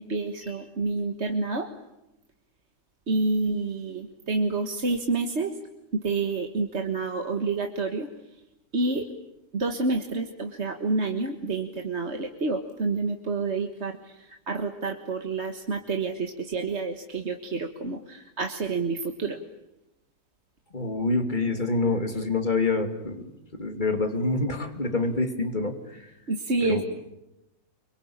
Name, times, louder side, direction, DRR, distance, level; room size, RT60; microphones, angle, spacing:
voice 1, 0.0-1.7 3.1-5.5 5.9-8.1 8.7-9.1 9.5-19.4 26.3-26.8, right 3 dB, 45° right, 5 dB, 1.8 m, -28 dB
voice 2, 20.7-23.2 23.6-26.0 26.7-26.8, left 3 dB, 30° left, 6 dB, 2.9 m, -26 dB
26.0 x 24.5 x 8.8 m, 0.91 s
omnidirectional pair, 1.7 m